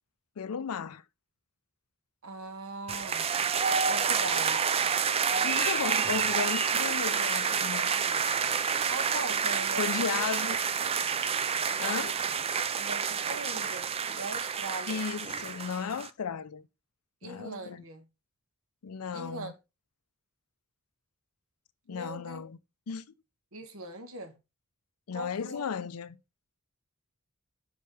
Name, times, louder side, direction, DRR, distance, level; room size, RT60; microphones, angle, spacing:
voice 1, 0.4-1.0 5.4-7.9 9.8-10.6 11.8-12.3 14.9-16.7 17.2-17.8 18.8-19.5 21.9-22.6 22.9-23.0 25.1-26.2, left 6 dB, 90° left, 0.5 m, -35 dB
voice 2, 2.2-3.3 3.9-4.6 8.9-10.5 12.8-15.0 17.2-18.1 19.1-19.5 21.9-22.4 23.5-24.3 25.1-25.6, right 2 dB, 70° right, 1.2 m, -40 dB
sound 1, 2.9-16.1, right 6 dB, 25° right, 0.4 m, -29 dB
5.6 x 5.1 x 3.3 m
head